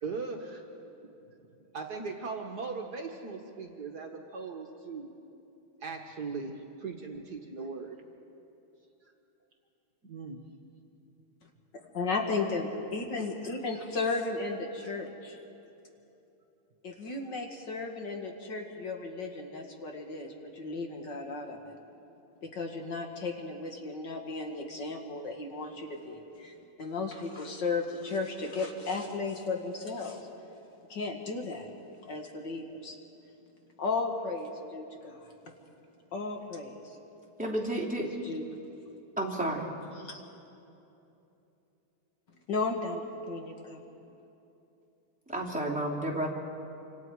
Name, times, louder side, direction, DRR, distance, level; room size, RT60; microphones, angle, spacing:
voice 1, 0.0-0.7 1.7-5.1 5.8-6.5 6.8-8.0 10.0-10.4 14.8-14.9 16.9-17.0, right 4 dB, 50° right, 2 dB, 1.7 m, -39 dB
voice 2, 11.7-15.4 16.8-21.6 22.4-30.3 30.9-31.7 32.0-33.0 33.8-35.3 36.1-37.0 38.0-38.7 40.0-40.2 42.5-43.8, left 3 dB, 55° left, 3 dB, 2.1 m, -35 dB
voice 3, 37.4-38.1 39.2-39.7 45.3-46.3, right 1 dB, 5° right, -4 dB, 2.8 m, -31 dB
27.5 x 26.0 x 4.7 m, 2.9 s
omnidirectional pair, 2.4 m